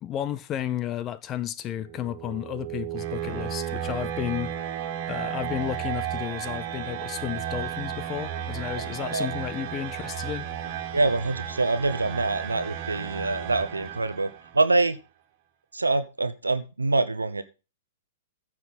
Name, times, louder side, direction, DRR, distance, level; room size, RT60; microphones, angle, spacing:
voice 1, 0.0-4.5 5.1-10.5, left 11 dB, 25° left, 0.5 m, -32 dB
sound 1, 1.7-14.6, right 9 dB, 40° right, 1.9 m, -34 dB
voice 2, 10.9-14.3 14.5-15.0 15.7-17.4, right 2 dB, 80° right, 0.8 m, -25 dB
14.5 x 6.0 x 4.1 m
figure-of-eight pair, 105°, 0 cm